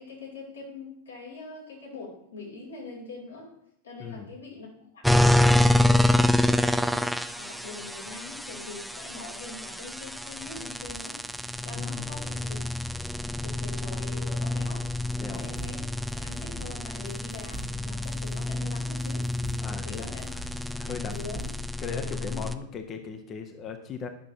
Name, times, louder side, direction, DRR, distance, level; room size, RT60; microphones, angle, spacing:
voice 1, 0.0-3.5 3.8-5.1 5.5-12.6 13.4-14.9 15.2-15.9 16.1-19.3 19.8-20.3 20.5-21.5 21.9-22.5, left 3 dB, 75° left, -3 dB, 2.8 m, -43 dB
sound 1, 5.0-22.5, left 1 dB, ahead, 0.3 m, -27 dB
voice 2, 11.7-12.1 15.2-15.6 19.6-20.4 20.7-21.3 21.8-24.1, left 6 dB, 30° left, 7 dB, 0.8 m, -38 dB
sound 2, 14.6-21.9, right 1 dB, 25° right, 1.0 m, -44 dB
10.0 x 6.1 x 2.8 m, 0.72 s
figure-of-eight pair, 90°, 0 cm